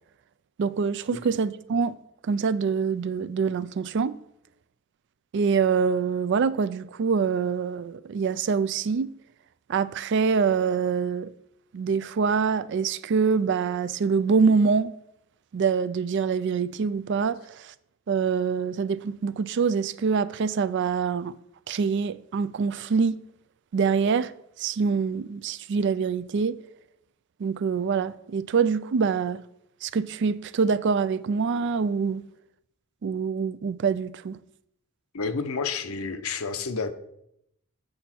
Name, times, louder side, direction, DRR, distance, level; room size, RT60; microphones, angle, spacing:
voice 1, 0.6-1.9 2.3-4.1 5.3-9.1 9.7-11.3 11.7-14.9 15.5-17.7 18.1-21.3 21.7-23.2 23.7-24.3 24.6-26.6 27.4-29.4 29.8-32.2 33.0-34.4, right 5 dB, 55° right, 0.4 m, -25 dB
voice 2, 35.1-36.9, left 4 dB, 90° left, 0.8 m, -30 dB
7.8 x 6.9 x 4.4 m
head